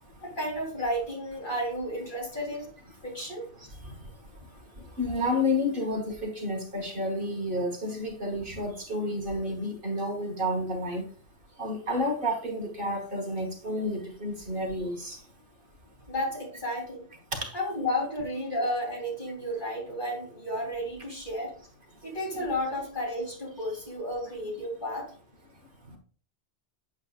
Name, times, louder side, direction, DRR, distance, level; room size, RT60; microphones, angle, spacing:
voice 1, 0.2-2.7 3.0-3.5 16.1-17.0 17.5-21.5 22.0-25.1, left 1 dB, 45° left, -2 dB, 3.7 m, -32 dB
voice 2, 5.0-11.0 11.6-15.2 17.4-17.5 22.3-22.4, left 1 dB, 50° right, 2 dB, 1.6 m, -30 dB
8.5 x 7.4 x 2.4 m, 0.43 s
omnidirectional pair, 1.2 m